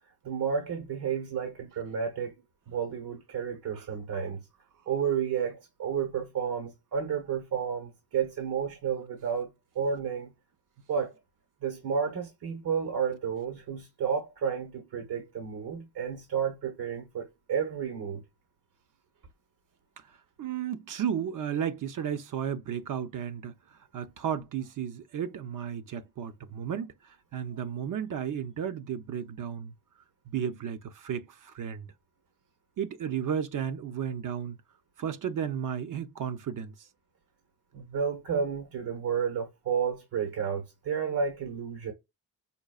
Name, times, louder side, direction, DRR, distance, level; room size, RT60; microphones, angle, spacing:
voice 1, 0.2-2.3 2.7-4.5 4.9-10.3 10.9-11.1 11.6-18.2 37.7-41.9, right 7 dB, 70° right, 1.1 m, -31 dB
voice 2, 20.4-23.5 23.9-29.7 30.3-31.9 32.8-34.6 35.0-36.7, right 8 dB, 50° right, 0.6 m, -33 dB
5.2 x 2.3 x 2.3 m
supercardioid pair, 55°, 40 cm